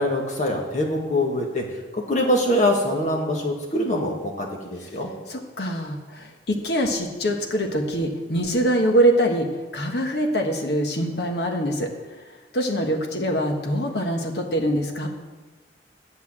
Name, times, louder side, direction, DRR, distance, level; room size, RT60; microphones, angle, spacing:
voice 1, 0.0-1.6 1.9-5.1, left 1 dB, 40° left, 0 dB, 1.7 m, -24 dB
voice 2, 5.3-11.9 12.5-15.1, right 1 dB, 65° left, 3 dB, 1.3 m, -24 dB
8.8 x 7.1 x 7.2 m, 1.3 s
head